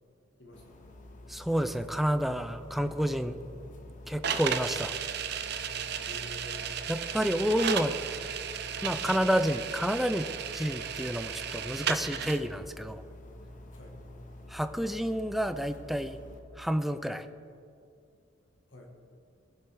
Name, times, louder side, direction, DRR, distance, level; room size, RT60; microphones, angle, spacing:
voice 1, 0.4-0.9 6.0-6.8 9.0-9.2 13.7-14.0 18.7-18.9, left 1 dB, 70° left, 1 dB, 1.8 m, -50 dB
sound 1, 0.5-16.4, left 1 dB, 45° left, 1.0 m, -48 dB
voice 2, 1.3-3.4 4.1-4.9 6.9-7.9 8.8-10.3 10.5-13.0 14.5-16.2 16.6-17.3, equal, ahead, 10 dB, 0.4 m, -29 dB
sound 2, 4.2-12.4, right 7 dB, 60° right, 0.6 m, -34 dB
19.0 x 7.3 x 3.6 m, 2.5 s
head